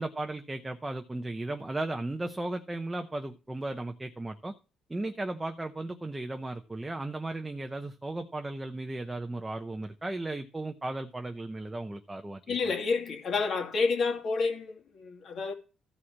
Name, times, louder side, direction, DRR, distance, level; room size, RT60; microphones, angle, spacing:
voice 1, 0.0-4.5 4.9-12.6, right 2 dB, 10° right, 0.8 m, -35 dB
voice 2, 12.5-15.5, left 4 dB, 45° left, 2.3 m, -29 dB
14.5 x 4.9 x 7.3 m
cardioid pair, 170°, 0 cm